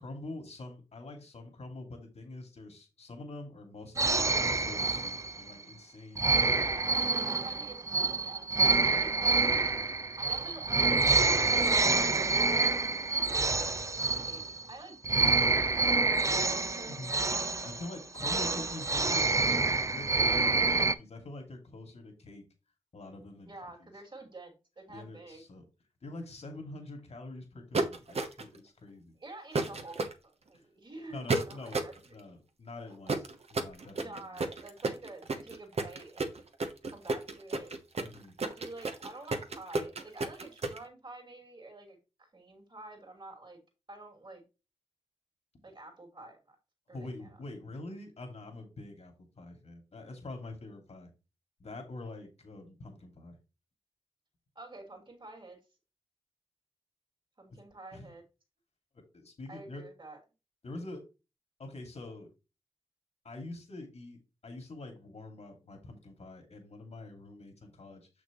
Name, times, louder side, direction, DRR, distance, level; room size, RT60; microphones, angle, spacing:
voice 1, 0.0-6.7 16.9-17.1 17.6-19.3 19.9-22.4 22.9-23.5 23.8-23.9 24.9-25.6 26.0-29.1 29.7-29.8 30.5-30.6 31.1-31.8 32.1-34.4 38.0-38.3 46.9-51.1 51.6-53.4 57.5-57.6 57.9-58.1 58.9-59.8 60.6-61.0 61.6-62.3 63.2-68.1, left 2 dB, 70° left, 2.3 m, -45 dB
sound 1, 4.0-5.5 6.2-14.7 15.0-21.0, right 3 dB, 25° right, 0.5 m, -27 dB
voice 2, 6.5-7.0 7.3-9.4 10.1-12.4 12.9-13.0 13.2-14.4 14.7-17.1 23.4-25.4 29.2-32.2 34.0-36.4 36.8-37.7 38.5-43.6 43.9-44.4 45.6-46.6 46.9-47.3 54.5-55.6 57.4-58.2 59.5-60.2, right 2 dB, 45° right, 2.8 m, -49 dB
sound 2, 27.7-28.6 29.5-30.1 31.3-32.0 33.1-40.8, right 3 dB, 65° right, 1.0 m, -32 dB
6.5 x 6.1 x 3.0 m
cardioid pair, 50°, 11 cm